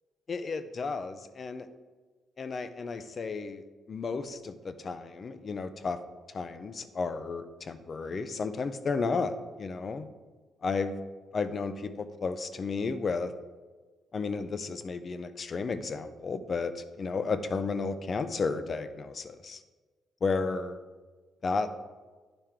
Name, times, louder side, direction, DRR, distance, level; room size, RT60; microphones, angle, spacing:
voice 1, 0.3-1.7 2.4-6.0 6.3-10.1 10.6-11.0 11.3-13.3 14.1-19.6 20.2-20.8 21.4-21.8, left 4 dB, 45° left, 11 dB, 0.5 m, -33 dB
9.8 x 3.6 x 4.4 m, 1.3 s
cardioid pair, 90°, 0 cm